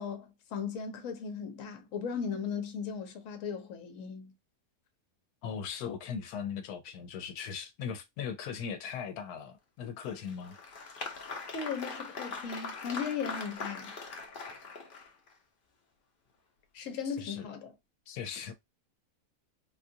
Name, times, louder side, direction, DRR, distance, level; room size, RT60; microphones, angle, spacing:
voice 1, 0.0-4.3 11.5-13.9 16.7-17.7, left 6 dB, 60° left, 1.1 m, -37 dB
voice 2, 5.4-10.6 17.0-17.5 18.1-18.5, left 7 dB, 85° left, 1.1 m, -39 dB
Applause, 10.0-15.3, left 4 dB, 40° left, 0.8 m, -41 dB
3.7 x 2.4 x 2.7 m
omnidirectional pair, 1.6 m